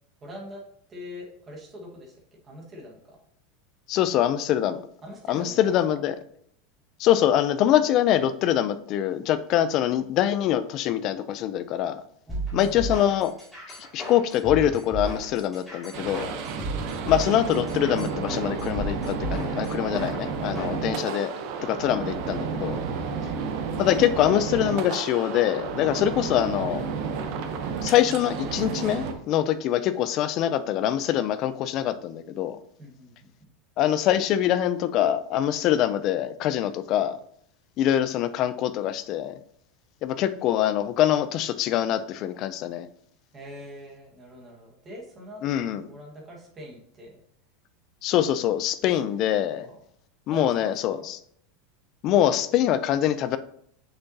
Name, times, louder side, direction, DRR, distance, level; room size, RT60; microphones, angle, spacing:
voice 1, 0.2-0.6 0.9-3.2 5.0-6.1 12.3-12.9 23.1-23.8 32.8-33.3 43.3-47.2 48.8-49.8 50.3-51.1, equal, 15° right, -2 dB, 1.5 m, -44 dB
voice 2, 3.9-4.8 5.3-6.1 7.0-12.0 12.5-13.3 13.7-16.3 17.0-21.3 21.6-22.8 23.8-26.9 27.8-32.6 33.8-37.2 37.8-39.3 40.0-42.9 45.4-45.9 48.0-49.7 50.3-51.2 52.0-53.4, left 11 dB, 35° left, 12 dB, 0.4 m, -24 dB
sound 1, 12.3-20.8, right 1 dB, ahead, 2.4 m, -34 dB
sound 2, 15.9-29.1, right 5 dB, 45° right, 0.8 m, -31 dB
6.8 x 5.7 x 2.8 m, 0.67 s
supercardioid pair, 175°, 0 cm